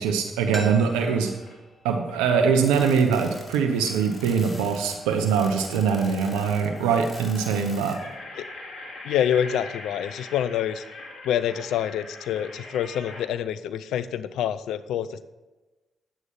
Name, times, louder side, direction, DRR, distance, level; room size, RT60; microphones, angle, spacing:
voice 1, 0.0-1.3 1.8-8.0, right 6 dB, 90° right, 4 dB, 0.8 m, -23 dB
sound 1, 0.5-3.3 3.6-3.7, right 2 dB, 20° right, 2.1 m, -42 dB
sound 2, 0.7-1.7 2.1-13.3, left 2 dB, 60° left, 2.4 m, -43 dB
sound 3, 2.6-8.1, left 1 dB, 20° left, 3.8 m, -45 dB
voice 2, 9.0-10.8 11.2-15.2, left 9 dB, 80° left, 14 dB, 0.5 m, -27 dB
9.8 x 8.1 x 5.5 m, 1.1 s
hypercardioid pair, 45°, 0 cm